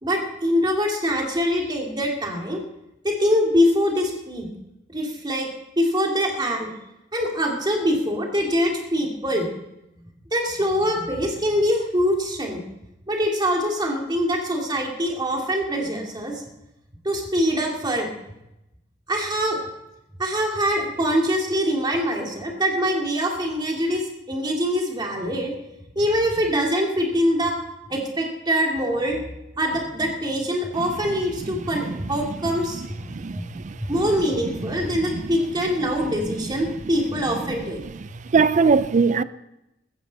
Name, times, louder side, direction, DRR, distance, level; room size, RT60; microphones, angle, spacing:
voice 1, 0.0-2.6 3.0-4.5 4.9-5.5 5.8-6.7 7.1-9.5 10.3-12.6 13.1-16.4 17.0-18.1 19.1-19.6 20.2-25.5 26.0-27.5 27.9-29.2 29.6-33.5 33.8-37.8, equal, 25° right, 2.5 m, -24 dB
voice 2, 33.1-33.7 38.3-39.2, right 5 dB, 40° right, 0.4 m, -19 dB
15.0 x 15.0 x 4.1 m
head